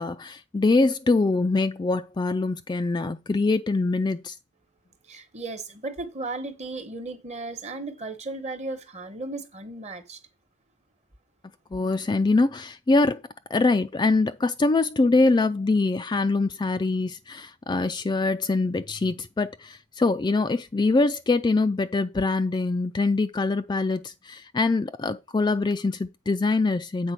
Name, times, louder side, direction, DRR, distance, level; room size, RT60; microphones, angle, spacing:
voice 1, 0.0-4.3 11.7-13.2 13.5-27.1, left 3 dB, 20° left, 0.3 m, -24 dB
voice 2, 5.0-10.2, right 2 dB, 35° right, 1.1 m, -35 dB
8.1 x 3.9 x 5.8 m
head